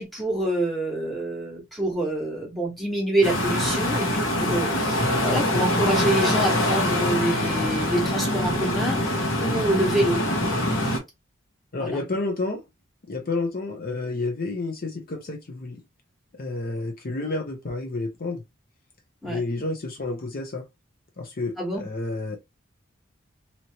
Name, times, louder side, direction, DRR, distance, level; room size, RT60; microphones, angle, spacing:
voice 1, 0.0-4.1 4.4-9.0 9.4-10.2 11.8-12.0 19.2-19.4 21.6-21.9, right 1 dB, ahead, 1.3 m, -26 dB
sound 1, 3.2-11.0, left 1 dB, 75° left, 1.2 m, -24 dB
voice 2, 11.7-12.6 13.0-15.8 16.4-18.4 19.2-20.6 21.2-22.4, left 3 dB, 45° left, 0.6 m, -30 dB
2.9 x 2.8 x 2.8 m
head